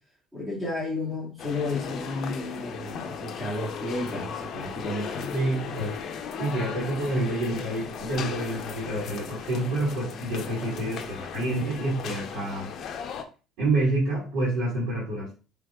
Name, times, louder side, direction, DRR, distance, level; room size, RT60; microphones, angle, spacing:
voice 1, 0.3-5.4, left 2 dB, 15° right, -7 dB, 2.3 m, -32 dB
sound 1, 1.4-13.2, left 7 dB, 55° left, 0.6 m, -36 dB
voice 2, 5.3-6.0 6.4-12.7 13.6-15.4, right 2 dB, 75° right, -8 dB, 2.1 m, -28 dB
4.7 x 3.4 x 2.3 m, 0.34 s
supercardioid pair, 90°, 0 cm